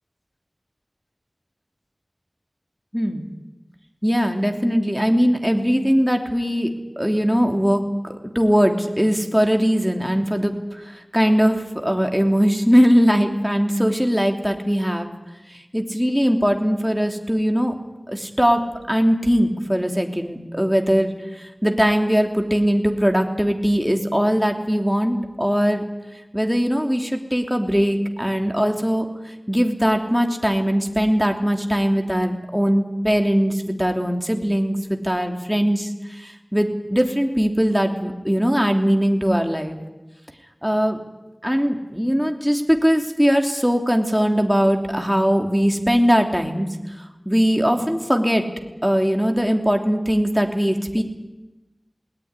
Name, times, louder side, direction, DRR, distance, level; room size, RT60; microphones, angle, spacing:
voice 1, 2.9-3.3 4.0-6.7 7.0-15.1 15.7-17.7 18.1-25.8 26.3-29.1 29.5-39.8 40.6-41.0 41.4-46.7 47.0-48.4 48.8-51.0, equal, ahead, 3 dB, 3.1 m, -20 dB
20.0 x 18.5 x 9.8 m, 1.0 s
wide cardioid pair, 45°, 0 cm